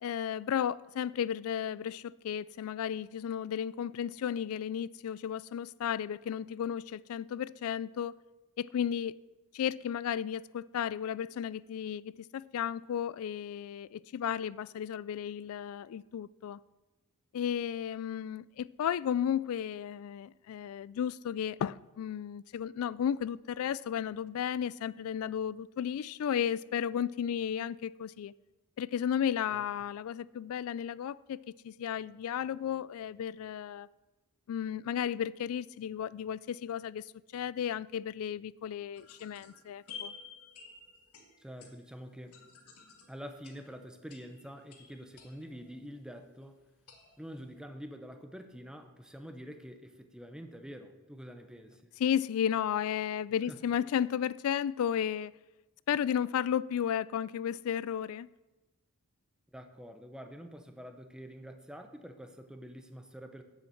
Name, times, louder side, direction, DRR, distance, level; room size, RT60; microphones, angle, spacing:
voice 1, 0.0-8.2 8.6-9.1 9.5-16.6 17.3-28.3 28.8-31.4 31.6-33.9 34.5-40.1 52.0-55.3 55.9-58.3, left 9 dB, 70° left, 0.3 m, -34 dB
sound 1, 38.9-46.2 46.9-47.6, left 6 dB, 90° left, 1.7 m, -52 dB
voice 2, 41.4-42.4 43.1-46.6 47.2-51.9 53.5-53.6 59.5-63.4, equal, 5° right, 0.8 m, -47 dB
7.5 x 7.1 x 7.8 m
head